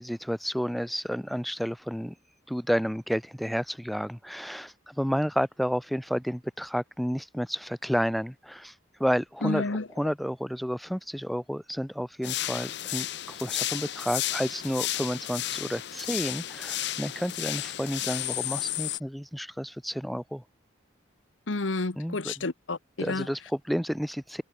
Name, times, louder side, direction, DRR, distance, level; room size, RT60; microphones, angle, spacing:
voice 1, 0.0-2.2 2.5-8.7 9.0-9.6 10.0-20.4 22.0-22.4 23.0-24.4, equal, ahead, 3.9 m, -31 dB
voice 2, 9.4-9.9 21.5-23.3, left 3 dB, 80° left, 1.3 m, -30 dB
sound 1, 12.2-19.0, left 14 dB, 60° left, 0.7 m, -33 dB
head